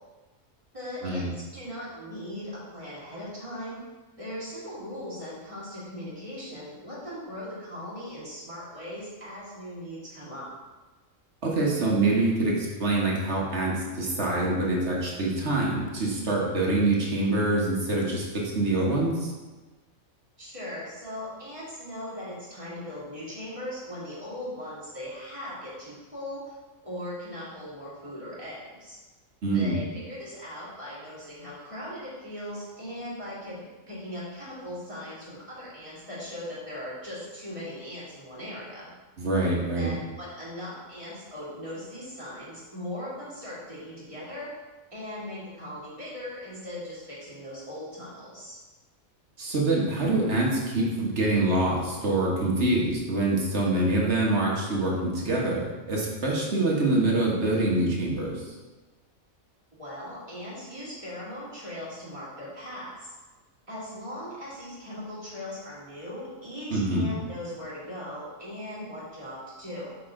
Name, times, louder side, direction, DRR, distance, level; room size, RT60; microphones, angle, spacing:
voice 1, 0.7-1.3 1.5-3.8 4.2-10.5 20.4-26.6 26.8-29.0 29.5-38.9 39.7-44.5 44.9-48.6 59.8-63.1 63.7-70.0, left 1 dB, 25° right, -9 dB, 2.5 m, -39 dB
voice 2, 11.4-19.3 29.4-29.8 39.2-39.9 49.4-58.5 66.7-67.1, right 2 dB, 55° right, -3 dB, 1.6 m, -25 dB
6.8 x 5.2 x 3.7 m, 1.2 s
omnidirectional pair, 1.4 m